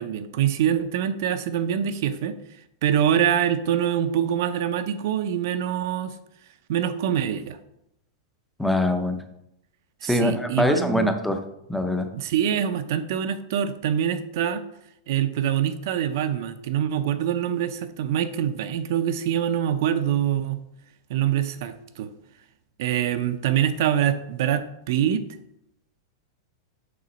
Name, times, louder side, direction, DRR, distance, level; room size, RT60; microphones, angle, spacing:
voice 1, 0.0-2.3 2.8-6.2 6.7-7.6 10.0-11.1 12.1-14.6 15.1-20.6 21.1-22.1 22.8-25.3, right 9 dB, 50° right, 10 dB, 0.5 m, -24 dB
voice 2, 8.6-9.2 10.0-11.4 11.7-12.1, left 1 dB, ahead, 6 dB, 0.5 m, -23 dB
6.7 x 3.9 x 5.1 m, 0.80 s
supercardioid pair, 170°, 2 cm